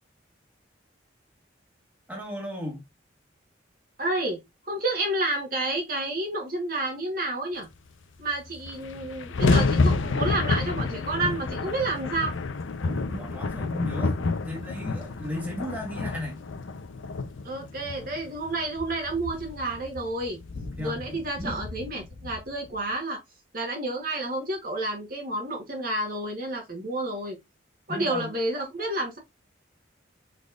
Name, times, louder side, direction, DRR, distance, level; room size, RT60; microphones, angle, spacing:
voice 1, 2.1-2.8 12.8-16.4 20.8-21.6 27.9-28.3, left 1 dB, 10° right, 1.5 m, -35 dB
voice 2, 4.0-4.4 4.7-7.7 8.2-12.3 17.4-20.4 20.8-23.2 23.5-27.4 27.9-29.2, right 2 dB, 45° right, 1.1 m, -30 dB
sound 1, 8.2-8.3 8.5-22.8, left 3 dB, 85° left, 0.6 m, -29 dB
4.8 x 4.1 x 2.4 m
head